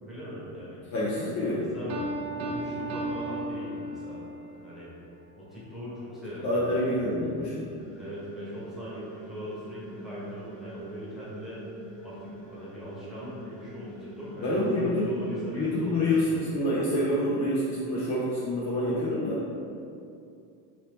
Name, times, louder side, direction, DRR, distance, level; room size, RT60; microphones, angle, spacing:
voice 1, 0.0-0.9 1.2-2.0 2.3-4.2 4.5-4.9 5.3-6.9 7.9-11.6 12.0-16.4, equal, ahead, -10 dB, 1.2 m, -40 dB
voice 2, 0.9-1.7 6.4-7.7 14.4-15.1 15.5-19.4, left 1 dB, 40° left, -7 dB, 0.7 m, -27 dB
Piano, 1.9-4.4, right 1 dB, 45° right, 0.6 m, -34 dB
sound 1, 7.8-16.0, right 1 dB, 85° left, 1.2 m, -45 dB
2.9 x 2.7 x 3.4 m, 2.5 s
supercardioid pair, 105°, 43 cm